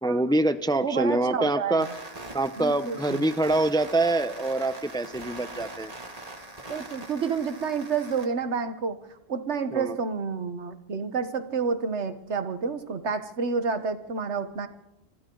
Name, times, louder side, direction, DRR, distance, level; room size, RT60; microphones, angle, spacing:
voice 1, 0.0-1.9 2.3-5.9 9.7-9.9, right 2 dB, 5° left, 11 dB, 0.6 m, -25 dB
voice 2, 0.8-1.9 2.6-3.2 6.7-9.0 9.3-14.7, right 5 dB, 75° right, 10 dB, 1.5 m, -29 dB
sound 1, 1.8-8.3, right 2 dB, 35° right, 2.0 m, -42 dB
27.0 x 25.5 x 3.9 m, 0.88 s
omnidirectional pair, 1.2 m